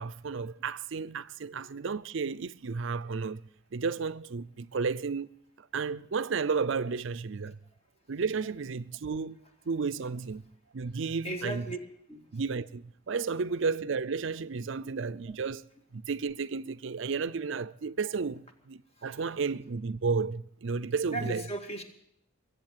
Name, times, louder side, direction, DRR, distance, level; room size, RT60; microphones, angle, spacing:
voice 1, 0.0-3.4 3.7-5.3 5.6-7.6 8.1-9.4 9.7-10.4 10.7-11.7 12.3-15.6 15.9-21.4, right 5 dB, 60° right, 0.5 m, -32 dB
voice 2, 11.2-11.8 12.1-12.2 14.8-15.0 19.0-19.2 21.1-21.8, right 2 dB, 30° left, 2.2 m, -37 dB
22.0 x 8.2 x 7.3 m
head